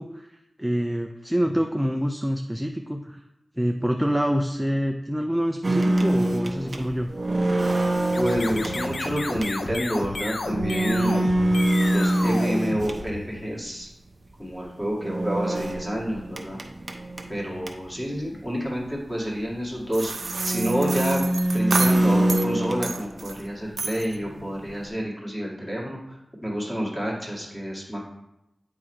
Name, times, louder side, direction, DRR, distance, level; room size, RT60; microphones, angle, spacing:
voice 1, 0.0-3.2 3.6-7.1, equal, 5° right, 3 dB, 0.4 m, -26 dB
sound 1, 5.6-13.5 14.9-18.0 18.4-18.5 18.7-18.8 19.6-19.7 20.2-23.5 23.7-24.9, right 1 dB, 40° right, 0.8 m, -25 dB
sound 2, 8.0-13.5, left 3 dB, 70° left, 0.6 m, -32 dB
voice 2, 8.1-11.3 11.9-13.9 14.4-16.6 17.3-21.2 21.5-28.0, equal, 10° left, -4 dB, 2.0 m, -29 dB
sound 3, 19.9-22.5 22.8-23.4 23.8-24.2, right 3 dB, 70° right, 0.6 m, -30 dB
8.1 x 3.6 x 4.5 m, 0.89 s
wide cardioid pair, 85°, 0 cm